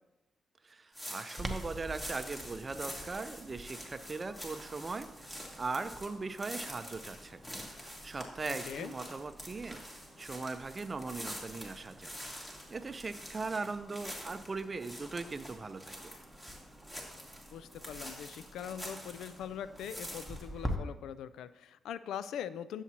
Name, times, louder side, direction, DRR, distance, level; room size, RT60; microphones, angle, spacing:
voice 1, 0.6-7.4 7.7-9.8 10.2-12.1 12.7-16.0, right 3 dB, 35° right, 10 dB, 0.6 m, -39 dB
sound 1, 0.9-19.4 19.8-20.4, equal, 15° left, 2.3 m, -46 dB
Clock, 1.4-20.7, equal, 5° right, 1.1 m, -48 dB
voice 2, 17.5-22.8, left 9 dB, 85° left, 15 dB, 0.3 m, -42 dB
10.5 x 7.2 x 2.9 m, 0.97 s
cardioid pair, 70°, 0 cm